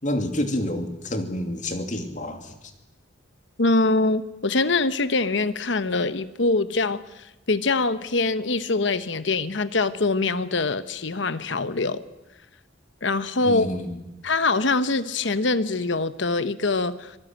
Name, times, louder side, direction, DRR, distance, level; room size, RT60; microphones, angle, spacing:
voice 1, 0.0-2.5 13.4-14.0, left 1 dB, 40° left, 6 dB, 2.7 m, -28 dB
voice 2, 3.6-12.0 13.0-13.7 14.2-17.2, left 3 dB, 65° left, 13 dB, 1.1 m, -24 dB
25.0 x 18.5 x 9.1 m, 0.98 s
head